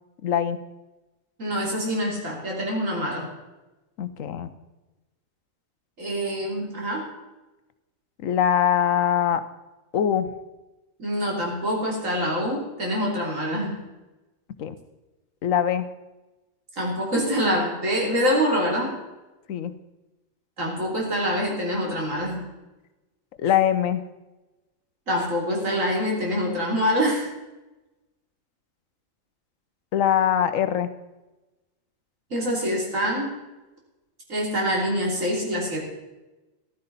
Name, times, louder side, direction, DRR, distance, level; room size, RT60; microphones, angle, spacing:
voice 1, 0.2-0.6 4.0-4.5 8.2-9.4 9.9-10.3 14.6-14.8 15.4-15.8 19.5-19.7 23.4-24.0 29.9-30.9, left 9 dB, 75° left, 12 dB, 1.1 m, -22 dB
voice 2, 1.4-3.3 6.0-7.0 11.0-13.8 16.8-18.9 20.6-22.4 25.1-27.3 32.3-33.3 34.3-35.8, equal, 70° right, -2 dB, 3.7 m, -25 dB
14.5 x 12.0 x 4.1 m, 1.1 s
omnidirectional pair, 1.4 m